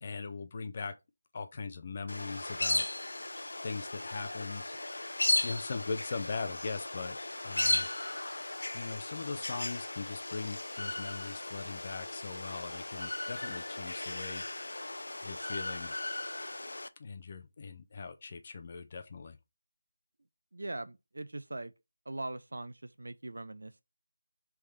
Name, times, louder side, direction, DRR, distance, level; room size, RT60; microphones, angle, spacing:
voice 1, 0.0-0.9 1.3-3.2 3.6-4.8 5.4-7.2 7.4-8.4 8.7-14.5 15.2-15.9 17.0-19.4, left 4 dB, 30° left, 0.4 m, -40 dB
sound 1, 2.1-16.9, left 2 dB, 90° left, 0.4 m, -36 dB
voice 2, 20.5-21.7 22.1-23.8, right 2 dB, 80° right, 0.4 m, -41 dB
3.5 x 3.2 x 4.7 m
figure-of-eight pair, 170°, 0 cm